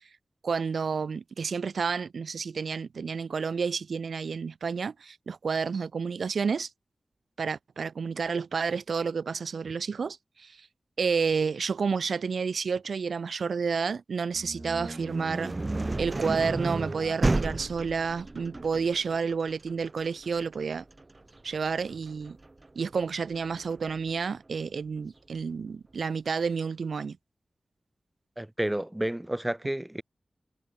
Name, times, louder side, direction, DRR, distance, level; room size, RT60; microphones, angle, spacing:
voice 1, 0.4-6.7 7.4-10.7 11.0-15.5 16.0-20.8 21.4-22.4 22.7-27.2, right 5 dB, 85° right, 1.3 m, -30 dB
sound 1, 14.3-24.1, right 2 dB, 40° right, 2.0 m, -33 dB
voice 2, 28.4-30.0, right 1 dB, 15° right, 2.0 m, -30 dB
cardioid pair, 40°, 0 cm